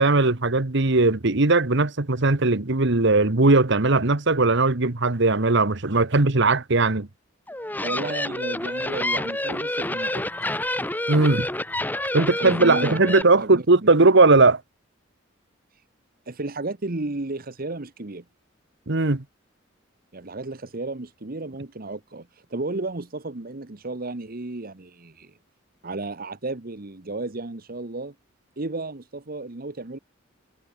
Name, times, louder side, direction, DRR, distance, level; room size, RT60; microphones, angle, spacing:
voice 1, 0.0-7.1 11.1-11.5 12.1-14.6 18.9-19.2, right 3 dB, 65° right, 1.5 m, -19 dB
sound 1, 7.5-13.2, left 1 dB, 10° left, 1.6 m, -28 dB
voice 2, 7.8-10.2 12.4-13.9 16.3-18.2 20.1-25.3 25.8-28.1 28.6-30.0, right 2 dB, 50° right, 1.3 m, -33 dB
head